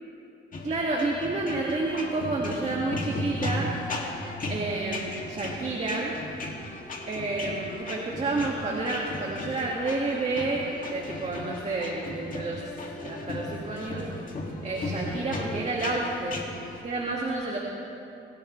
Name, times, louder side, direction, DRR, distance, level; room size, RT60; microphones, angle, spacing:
sound 1, 0.5-16.8, left 2 dB, 45° left, 2.4 m, -36 dB
voice 1, 0.6-3.7 4.5-6.1 7.1-12.6 13.0-14.1 14.6-16.4 16.8-17.6, right 3 dB, 35° right, -2 dB, 2.1 m, -30 dB
25.5 x 16.0 x 3.3 m, 2.8 s
cardioid pair, 90°, 20 cm